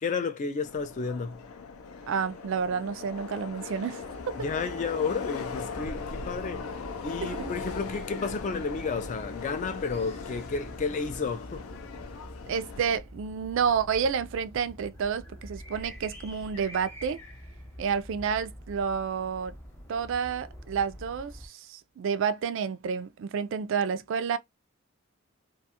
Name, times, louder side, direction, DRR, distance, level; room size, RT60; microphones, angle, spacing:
voice 1, 0.0-1.4 4.4-6.7 7.0-11.7, left 4 dB, 35° left, 0.3 m, -32 dB
Subway metro underground, 0.6-13.0, left 4 dB, 90° left, 0.5 m, -39 dB
voice 2, 2.1-4.0 7.2-7.5 12.5-17.2 17.8-19.5 19.9-24.4, right 6 dB, 60° right, 0.3 m, -30 dB
sound 1, 4.0-21.5, equal, 10° left, 0.7 m, -47 dB
2.4 x 2.3 x 2.8 m
head